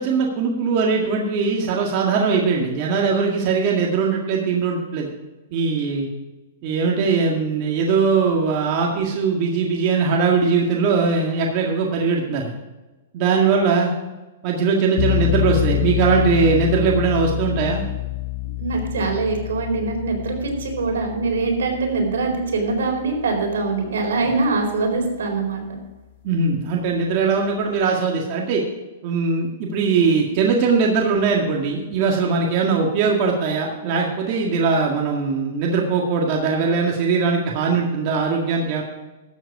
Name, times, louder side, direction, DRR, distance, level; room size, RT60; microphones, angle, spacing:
voice 1, 0.0-5.1 5.5-6.1 6.6-12.5 13.1-13.9 14.4-17.8 26.2-28.6 29.0-38.8, right 5 dB, 40° right, -1 dB, 1.9 m, -20 dB
sound 1, 15.0-23.8, left 19 dB, 50° left, 0.6 m, -27 dB
voice 2, 18.6-25.6, right 3 dB, 85° right, 2 dB, 4.3 m, -23 dB
13.5 x 8.1 x 4.8 m, 1.1 s
hypercardioid pair, 150°, 0 cm